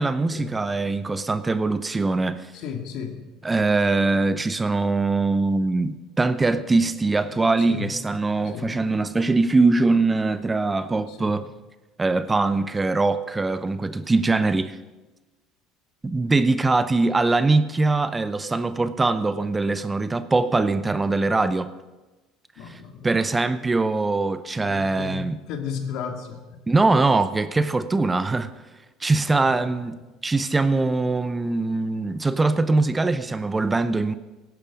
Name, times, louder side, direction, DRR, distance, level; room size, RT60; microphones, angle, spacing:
voice 1, 0.0-2.5 3.4-11.5 12.0-14.8 16.0-21.7 22.7-25.4 26.7-28.5 29.0-34.1, right 3 dB, 20° right, 0.7 m, -22 dB
voice 2, 2.5-3.3 7.6-7.9 8.4-8.8 11.1-11.4 22.6-23.3 24.6-26.6 28.2-28.3 29.3-29.8, left 7 dB, 65° left, 2.1 m, -35 dB
17.5 x 11.0 x 5.1 m
hypercardioid pair, 80°, 0 cm